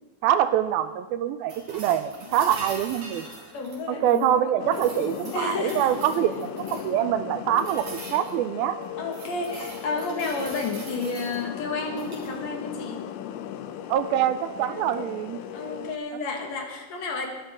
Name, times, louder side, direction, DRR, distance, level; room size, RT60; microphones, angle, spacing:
voice 1, 0.2-3.3 4.0-8.8 13.9-15.4, right 11 dB, 85° right, 11 dB, 2.4 m, -25 dB
sound 1, 1.5-4.3 4.7-7.0 7.5-8.3 8.8-11.4 11.9-12.3 14.4-14.5, right 2 dB, 40° right, 3.9 m, -42 dB
voice 2, 3.5-6.0 9.0-13.0 14.6-15.1 15.5-17.3, left 3 dB, 50° left, 2 dB, 2.5 m, -32 dB
sound 2, 4.6-16.0, left 10 dB, 85° left, 2.6 m, -37 dB
21.5 x 11.5 x 3.7 m, 1.2 s
omnidirectional pair, 4.5 m